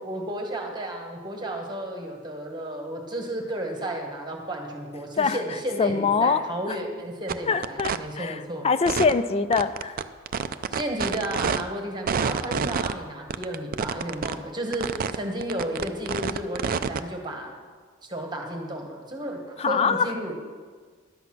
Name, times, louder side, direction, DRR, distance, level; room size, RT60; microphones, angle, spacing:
voice 1, 0.0-8.7 10.7-17.5 18.0-20.3, right 1 dB, 20° right, 1 dB, 1.3 m, -33 dB
voice 2, 5.8-6.4 6.7-6.8 7.5-10.0 19.6-20.1, left 5 dB, 30° left, 12 dB, 0.4 m, -24 dB
sound 1, 7.3-7.4 7.6-8.0 8.9-9.1 9.5-11.6 12.1-12.9 13.3-14.3 14.7-15.2 15.4-17.0, right 6 dB, 45° right, 0.4 m, -27 dB
11.5 x 8.2 x 5.9 m, 1.5 s
head